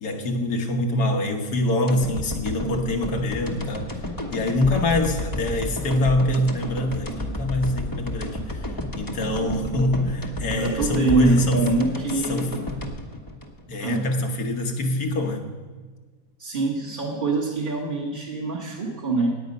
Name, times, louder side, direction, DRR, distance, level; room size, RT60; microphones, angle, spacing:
voice 1, 0.0-3.9 4.3-11.6 12.3-12.5 13.7-15.5, left 1 dB, 80° left, 4 dB, 1.8 m, -24 dB
sound 1, 1.9-14.1 14.5-14.6, left 1 dB, 15° left, 0.9 m, -32 dB
voice 2, 10.6-12.6 13.8-14.1 16.4-19.4, right 2 dB, 35° right, -3 dB, 1.6 m, -24 dB
17.5 x 8.8 x 5.3 m, 1.4 s
omnidirectional pair, 1.6 m